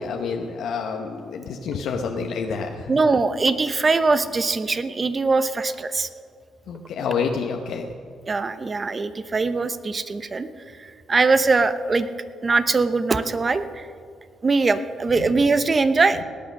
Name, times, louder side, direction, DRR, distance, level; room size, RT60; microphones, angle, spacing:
voice 1, 0.0-2.9 6.7-7.9 15.2-15.3, left 5 dB, 75° left, 2 dB, 0.9 m, -28 dB
voice 2, 2.9-6.1 8.3-10.5 10.8-12.1 12.4-13.9 14.4-16.2, right 3 dB, 30° right, 11 dB, 0.8 m, -21 dB
18.5 x 8.7 x 6.5 m, 2.1 s
cardioid pair, 90°, 0 cm